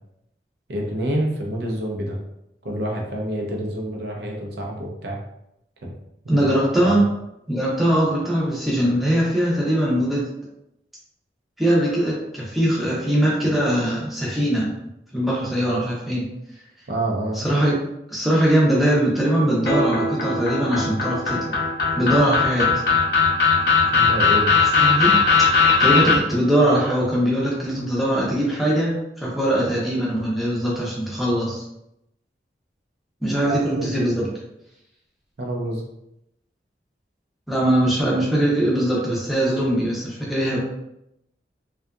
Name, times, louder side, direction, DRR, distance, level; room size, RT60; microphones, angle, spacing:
voice 1, 0.7-2.2 2.6-5.2 6.2-7.0 16.9-17.5 23.9-24.5 33.5-33.9 35.4-35.8, right 1 dB, 70° right, 0 dB, 0.5 m, -27 dB
voice 2, 6.3-7.1 7.5-10.2 11.6-14.7 15.1-16.3 17.3-17.8 18.1-21.5 22.0-22.7 24.8-31.6 33.2-34.4 37.5-40.6, right 1 dB, ahead, -6 dB, 0.5 m, -21 dB
sound 1, 19.7-26.2, left 5 dB, 60° left, 0.6 m, -18 dB
2.6 x 2.3 x 2.3 m, 0.83 s
head